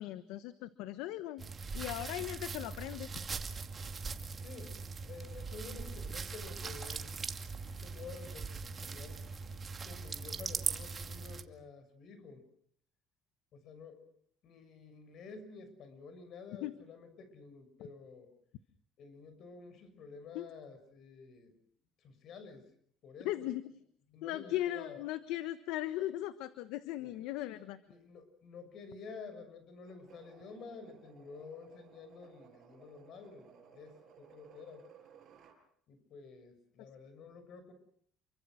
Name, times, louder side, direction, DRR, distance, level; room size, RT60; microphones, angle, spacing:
voice 1, 0.0-1.4 1.7-3.1 16.6-16.7 20.3-20.4 23.2-23.6 24.2-27.8, left 14 dB, 90° left, 12 dB, 1.2 m, -38 dB
sound 1, 1.4-11.4, right 4 dB, 30° right, 2.3 m, -40 dB
voice 2, 4.4-4.8 5.0-7.2 7.6-9.2 9.8-12.4 13.5-14.0 14.4-18.3 19.0-21.5 22.0-22.7 23.0-23.5 24.1-24.9 27.0-27.1 27.9-34.9 35.9-37.7, left 4 dB, 55° left, 10 dB, 6.7 m, -51 dB
sound 2, 29.8-35.6, right 8 dB, 50° right, 6.8 m, -59 dB
28.5 x 24.5 x 6.4 m, 0.64 s
cardioid pair, 120°, 0 cm